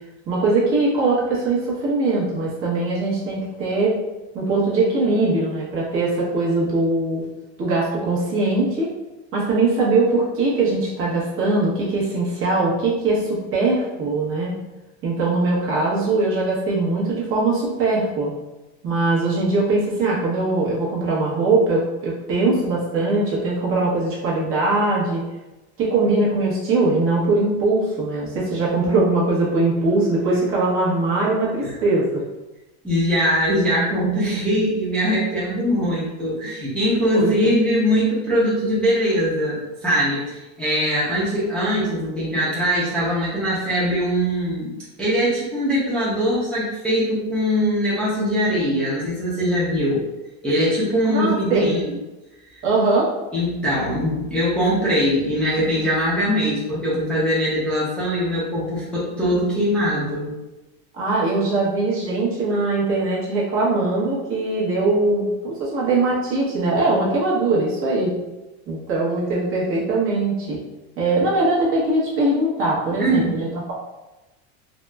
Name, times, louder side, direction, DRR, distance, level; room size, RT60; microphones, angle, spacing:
voice 1, 0.3-4.0 4.3-7.2 7.6-8.9 9.3-14.5 15.0-18.3 18.8-25.2 25.8-32.2 37.1-37.5 51.1-51.7 52.6-53.1 60.9-68.1 68.7-70.6 71.0-73.7, right 2 dB, 40° right, -6 dB, 1.0 m, -21 dB
voice 2, 32.8-44.7 45.0-50.0 50.4-51.9 52.5-52.6 53.3-60.3 73.0-73.3, equal, 5° left, -10 dB, 0.6 m, -21 dB
4.0 x 2.0 x 2.3 m, 1.0 s
cardioid pair, 155°, 34 cm